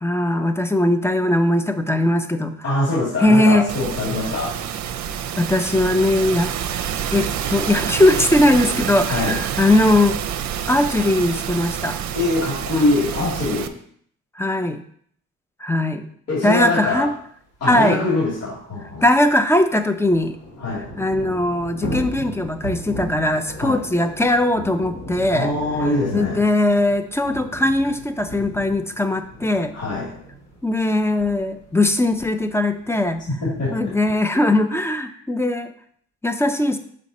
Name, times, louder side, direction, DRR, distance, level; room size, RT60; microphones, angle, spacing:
voice 1, 0.0-2.5 3.2-3.7 5.4-6.5 7.1-10.2 10.7-12.0 14.4-14.8 15.6-16.1 16.4-17.1 17.7-18.0 19.0-20.4 21.0-25.5 26.1-29.7 30.6-33.2 33.7-35.7 36.2-36.8, left 1 dB, 10° left, 9 dB, 0.5 m, -19 dB
voice 2, 2.6-4.6 9.1-9.4 12.1-13.7 16.3-17.1 17.6-19.0 20.6-20.8 23.6-23.8 25.3-26.4 29.7-30.1 33.4-33.8, left 2 dB, 55° left, -7 dB, 2.8 m, -23 dB
sound 1, 3.7-13.7, right 9 dB, 70° right, 0.6 m, -27 dB
Thunder / Rain, 17.5-17.6 17.9-18.0 18.3-34.1, equal, 90° left, 1.8 m, -37 dB
5.3 x 4.8 x 4.2 m, 0.62 s
cardioid pair, 90°, 30 cm